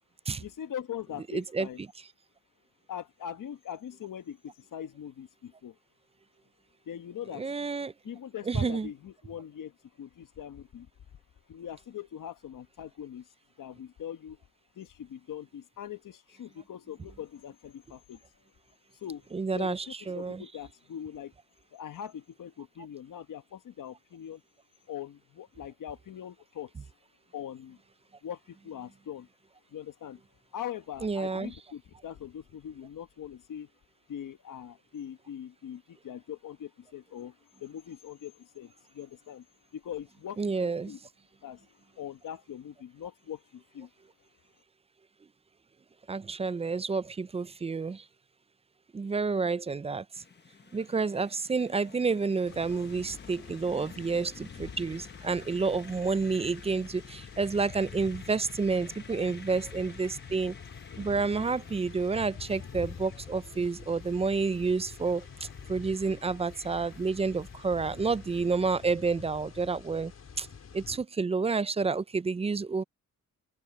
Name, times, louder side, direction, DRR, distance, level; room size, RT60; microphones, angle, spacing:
voice 1, 0.4-1.8 2.9-5.7 6.8-7.5 8.0-10.9 11.5-13.3 13.6-14.4 14.7-18.2 18.9-19.3 19.5-21.3 21.7-24.4 24.9-26.7 27.3-27.8 28.2-29.3 29.7-30.2 30.5-33.7 34.1-39.4 39.7-41.0 41.4-41.7 42.0-43.9, left 9 dB, 70° left, 1.4 m, -42 dB
voice 2, 1.3-1.7 7.3-7.9 8.5-8.9 19.3-20.4 31.0-31.5 40.4-41.0 46.1-48.0 48.9-50.0 50.7-60.5 61.0-65.2 65.7-70.1 70.4-70.5 70.7-72.8, right 4 dB, 20° right, 0.3 m, -29 dB
sound 1, 50.1-68.9, left 5 dB, 30° left, 1.1 m, -52 dB
sound 2, 52.5-71.0, left 6 dB, 50° left, 4.5 m, -47 dB
open air
cardioid pair, 120°, 33 cm